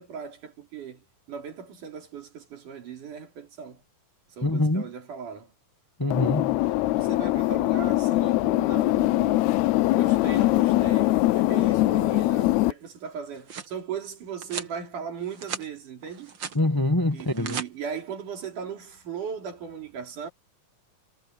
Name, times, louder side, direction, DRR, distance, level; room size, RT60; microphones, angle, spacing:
voice 1, 0.0-3.8 4.3-5.5 6.5-9.5 9.9-16.4 17.1-20.3, right 7 dB, 80° right, 4.9 m, -38 dB
voice 2, 4.4-4.8 6.0-6.6 16.5-17.6, left 2 dB, 15° left, 0.8 m, -24 dB
sound 1, 6.1-12.7, left 18 dB, 80° left, 1.6 m, -22 dB
sound 2, 13.1-13.7 14.4-14.7 15.2-15.7 16.0-16.6 17.2-17.7, right 6 dB, 45° right, 1.9 m, -36 dB
omnidirectional pair, 3.6 m